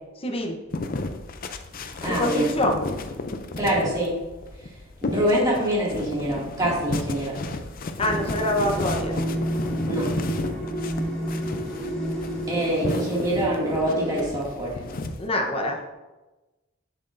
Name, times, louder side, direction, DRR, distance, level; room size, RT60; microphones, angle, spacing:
voice 1, 0.2-0.6 2.0-2.8 8.0-9.2 12.8-13.1 15.2-15.8, left 1 dB, 30° left, 1 dB, 0.9 m, -25 dB
sound 1, 0.7-15.3, left 2 dB, 45° left, 0.5 m, -33 dB
voice 2, 2.0-2.5 3.6-4.2 5.0-7.4 9.9-10.1 12.5-14.8, right 1 dB, 20° right, -6 dB, 2.3 m, -25 dB
sound 2, 8.0-14.3, equal, 5° left, 1.9 m, -30 dB
7.8 x 7.1 x 2.6 m, 1.1 s
head